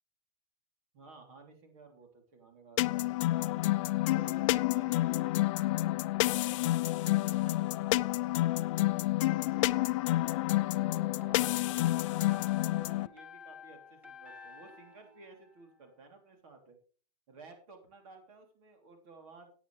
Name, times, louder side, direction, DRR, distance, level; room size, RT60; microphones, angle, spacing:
voice 1, 0.9-3.6 4.1-8.6 9.1-16.8 17.3-19.5, right 3 dB, 60° right, 4 dB, 3.4 m, -55 dB
sound 1, 2.8-13.1, left 17 dB, 55° left, 0.5 m, -29 dB
sound 2, 10.2-16.2, left 5 dB, 5° right, 1.8 m, -52 dB
14.5 x 9.2 x 3.4 m, 0.38 s
supercardioid pair, 155°, 20 cm